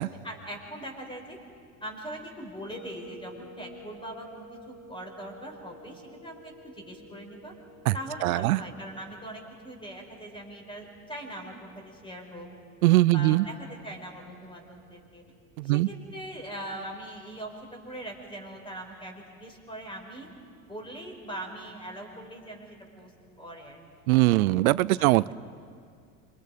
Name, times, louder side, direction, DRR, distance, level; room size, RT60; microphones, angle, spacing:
voice 1, 0.0-1.4 1.8-7.5 7.9-12.5 13.1-15.2 15.6-20.3 20.7-23.1 23.4-23.8 25.0-25.2, right 1 dB, 10° left, 2 dB, 5.0 m, -41 dB
sound 1, 2.7-17.6, equal, 70° left, 4.2 m, -53 dB
voice 2, 8.2-8.6 12.8-13.5 15.6-15.9 24.1-25.3, right 18 dB, 75° right, 20 dB, 0.6 m, -21 dB
27.5 x 24.0 x 5.2 m, 2.2 s
hypercardioid pair, 85°, 43 cm